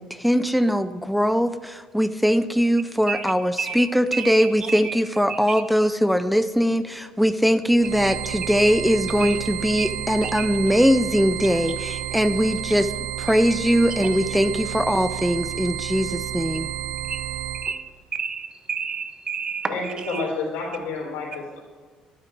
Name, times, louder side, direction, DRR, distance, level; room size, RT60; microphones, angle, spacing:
voice 1, 0.0-12.9 13.2-16.7, equal, ahead, 11 dB, 0.5 m, -21 dB
voice 2, 3.6-5.0 5.3-5.4 9.2-9.4 9.8-9.9 10.2-10.5 17.1-17.2 17.6-17.8 18.1-20.3, right 6 dB, 35° right, 9 dB, 1.1 m, -30 dB
sound 1, 7.8-17.7, right 11 dB, 80° right, 0.7 m, -31 dB
voice 3, 19.7-21.6, left 3 dB, 80° left, -3 dB, 4.1 m, -29 dB
11.5 x 9.9 x 4.5 m, 1.4 s
cardioid pair, 95°, 2 cm